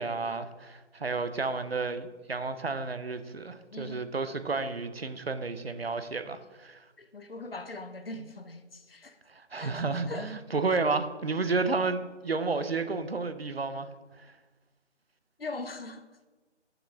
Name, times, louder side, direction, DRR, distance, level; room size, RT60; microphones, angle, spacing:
voice 1, 0.0-6.8 9.3-13.9 14.2-14.3, right 3 dB, 55° right, 0.8 m, -31 dB
voice 2, 3.7-4.1 7.0-9.2 9.5-10.3 15.4-16.1, left 2 dB, 55° left, 0.9 m, -41 dB
7.0 x 6.0 x 7.1 m
figure-of-eight pair, 170°, 35 cm